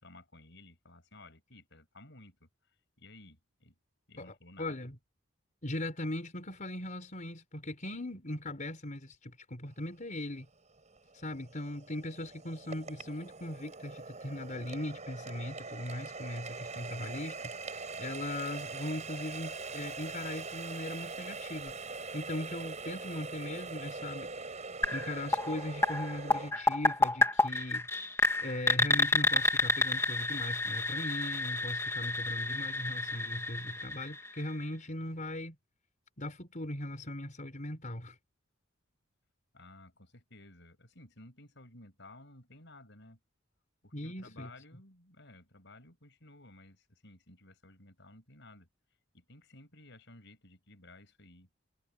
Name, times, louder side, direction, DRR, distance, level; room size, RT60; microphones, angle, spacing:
voice 1, 0.0-2.5 3.0-3.7 4.1-4.9 39.5-43.2 43.8-48.7 49.1-51.5, left 2 dB, 65° left, 7.2 m, -55 dB
voice 2, 4.2-5.0 5.6-10.5 11.1-21.7 22.1-27.9 28.4-35.6 36.2-38.2 43.9-44.5, left 1 dB, 40° left, 4.6 m, -39 dB
Water tap faucet, 10.0-10.1 10.7-26.5, right 4 dB, 40° right, 5.8 m, -42 dB
sound 1, 24.8-34.6, left 2 dB, 15° left, 2.4 m, -30 dB
head